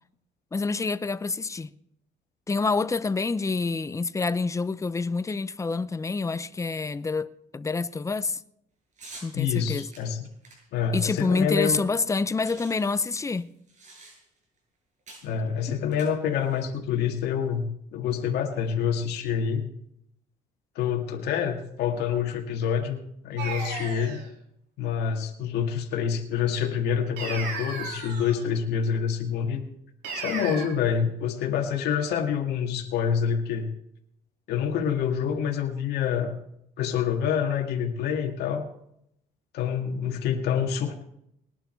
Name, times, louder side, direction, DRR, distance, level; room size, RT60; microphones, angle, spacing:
voice 1, 0.5-1.7 2.5-8.4 9.2-9.9 10.9-13.5 15.7-15.8, left 4 dB, 20° left, 0.6 m, -27 dB
sound 1, 9.0-9.3 9.9-11.7 12.0-12.1 12.3-14.4 15.1-15.3 15.9-16.6, right 2 dB, 45° right, 7.6 m, -48 dB
voice 2, 9.3-10.3 10.7-11.8 15.2-19.6 20.8-24.2 24.8-29.6 30.1-33.7 34.5-36.4 36.8-38.7 39.5-41.0, left 7 dB, 75° left, 2.2 m, -27 dB
sound 2, 23.4-24.3 27.2-28.4 30.0-30.6, right 4 dB, 85° right, 3.6 m, -34 dB
20.0 x 11.0 x 4.6 m
cardioid pair, 110°, 17 cm